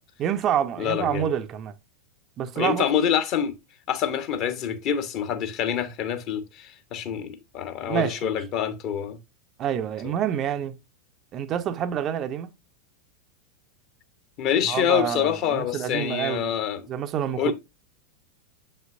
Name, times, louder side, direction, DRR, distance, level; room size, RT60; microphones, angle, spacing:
voice 1, 0.2-1.7 2.4-2.9 7.9-8.3 9.6-10.8 11.3-12.5 14.7-16.5 16.9-17.5, right 9 dB, 30° right, 0.6 m, -27 dB
voice 2, 0.8-1.3 2.6-3.5 3.9-9.2 10.0-10.1 14.4-16.9 17.4-17.5, left 9 dB, 40° left, 1.0 m, -26 dB
7.4 x 5.5 x 2.4 m
figure-of-eight pair, 90°, 0 cm